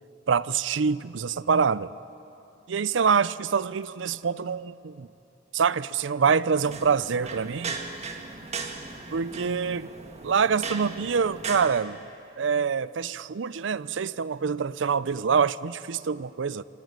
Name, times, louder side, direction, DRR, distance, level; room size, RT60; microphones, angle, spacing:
voice 1, 0.3-1.9 2.7-5.1 5.5-7.8 9.1-9.9 10.2-12.0 12.4-16.6, right 6 dB, 85° right, 18 dB, 0.5 m, -25 dB
sound 1, 6.5-11.7, right 4 dB, 35° right, 1.7 m, -37 dB
27.0 x 16.5 x 9.1 m, 2.9 s
head